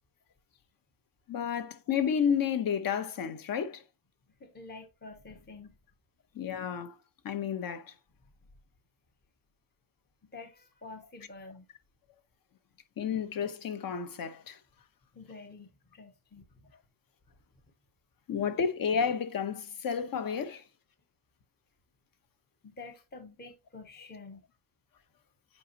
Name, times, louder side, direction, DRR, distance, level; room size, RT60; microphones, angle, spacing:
voice 1, 1.3-3.8 6.3-6.9 7.2-7.9 13.0-14.6 18.3-20.6, left 7 dB, 45° left, 1.0 m, -31 dB
voice 2, 4.4-5.7 10.2-11.7 15.1-16.7 22.6-24.5, left 3 dB, 20° left, 0.9 m, -48 dB
8.4 x 5.2 x 2.9 m
cardioid pair, 155°, 49 cm